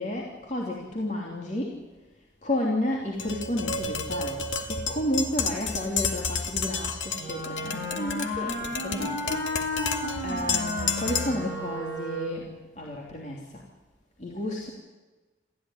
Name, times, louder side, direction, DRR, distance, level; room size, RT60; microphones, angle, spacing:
voice 1, 0.0-1.8 2.4-4.4 4.7-9.4 10.2-12.5 12.8-13.4 14.2-14.7, left 1 dB, 35° left, -2 dB, 3.1 m, -31 dB
Tap, 3.2-11.5, left 5 dB, 70° left, 2.3 m, -31 dB
Wind instrument woodwind instrument, 7.2-12.5, left 1 dB, 55° left, 7.1 m, -33 dB
29.0 x 14.5 x 9.9 m, 1.2 s
head